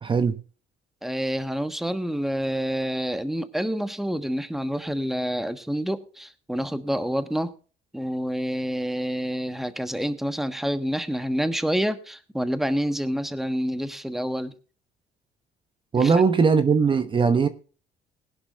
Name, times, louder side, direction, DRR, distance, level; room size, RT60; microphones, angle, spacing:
voice 1, 0.0-0.4 15.9-17.5, right 5 dB, 30° right, 1.0 m, -20 dB
voice 2, 1.0-7.5 7.9-14.6 16.0-16.1, equal, ahead, 1.3 m, -28 dB
20.5 x 11.0 x 2.4 m
cardioid pair, 110°, 17 cm